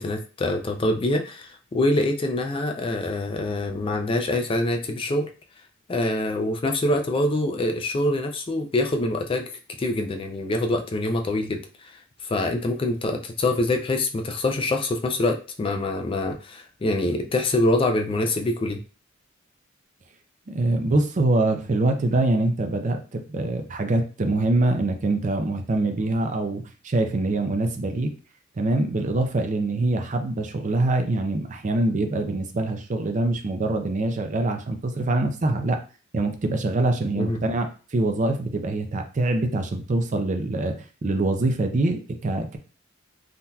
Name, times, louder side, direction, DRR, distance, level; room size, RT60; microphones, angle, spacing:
voice 1, 0.0-5.3 5.9-9.5 9.8-11.9 12.2-18.8 37.1-37.4, left 1 dB, 25° left, 4 dB, 0.4 m, -25 dB
voice 2, 20.5-28.1 28.6-35.8 36.1-40.7 41.0-42.6, right 2 dB, 40° right, 5 dB, 0.5 m, -24 dB
3.7 x 2.7 x 2.3 m, 0.35 s
head